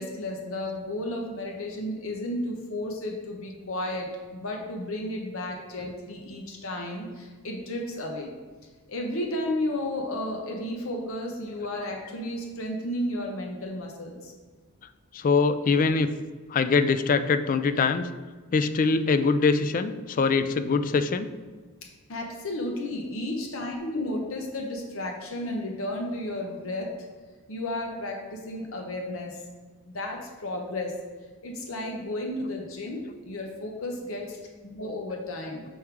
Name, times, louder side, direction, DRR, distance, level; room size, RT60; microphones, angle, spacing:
voice 1, 0.0-8.3 8.9-14.3 22.1-26.9 27.5-29.4 29.9-31.0 31.4-35.6, left 1 dB, 60° left, 1 dB, 0.8 m, -33 dB
voice 2, 15.1-16.1 16.5-18.1 18.5-21.3, left 4 dB, 35° left, 11 dB, 0.3 m, -23 dB
6.3 x 3.6 x 4.5 m, 1.4 s
head